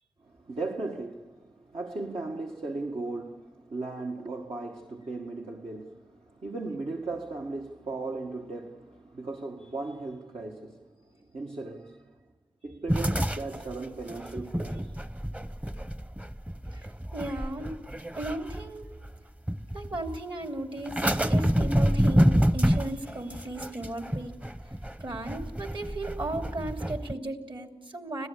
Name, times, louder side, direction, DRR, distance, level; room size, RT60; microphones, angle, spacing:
voice 1, 0.2-12.1 12.6-15.1, right 3 dB, 75° right, 1.6 m, -37 dB
sound 1, 12.9-19.1 19.5-20.1 20.9-27.1, equal, 15° right, 0.8 m, -28 dB
voice 2, 17.1-17.8 18.1-18.9 19.7-24.3 25.0-28.3, right 2 dB, 60° right, 3.0 m, -36 dB
26.0 x 16.5 x 8.4 m
cardioid pair, 45°, 10 cm